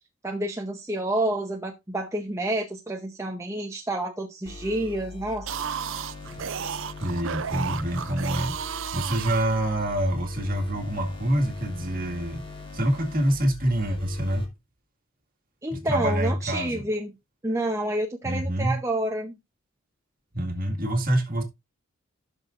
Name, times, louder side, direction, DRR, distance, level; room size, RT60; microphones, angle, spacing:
voice 1, 0.2-5.6 15.6-17.1 17.4-19.3, right 1 dB, 15° right, 0.7 m, -29 dB
sound 1, 4.5-14.5, left 3 dB, 25° left, 2.4 m, -42 dB
sound 2, 5.3-10.1, right 8 dB, 60° right, 0.5 m, -33 dB
voice 2, 7.0-12.4 12.7-14.5 15.7-16.8 18.2-18.8 20.3-21.4, right 1 dB, 40° right, 1.9 m, -26 dB
14.0 x 6.4 x 2.5 m
head